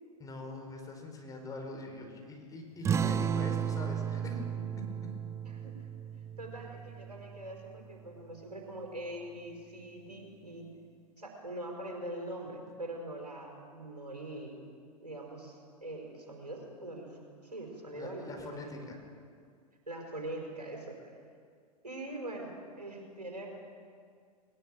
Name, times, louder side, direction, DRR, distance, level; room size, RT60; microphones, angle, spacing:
voice 1, 0.2-4.4 4.8-5.1 17.9-19.0, left 2 dB, 15° left, 2 dB, 4.8 m, -43 dB
sound 1, 2.8-7.9, right 8 dB, 15° right, 0.5 m, -34 dB
voice 2, 5.4-5.9 6.4-10.7 11.2-14.6 15.0-18.7 19.9-21.1 21.8-22.5 22.8-23.5, right 1 dB, 85° right, 1 dB, 5.1 m, -43 dB
20.5 x 19.5 x 7.8 m, 2.1 s
figure-of-eight pair, 95°, 20 cm